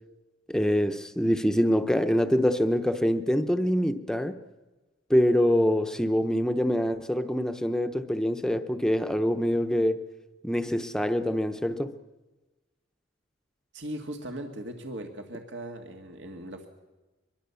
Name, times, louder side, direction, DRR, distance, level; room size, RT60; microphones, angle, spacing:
voice 1, 0.5-4.3 5.1-10.0 10.4-11.9, equal, 5° left, 0.8 m, -25 dB
voice 2, 13.7-16.7, right 1 dB, 75° right, 1.9 m, -38 dB
24.0 x 22.0 x 7.0 m
head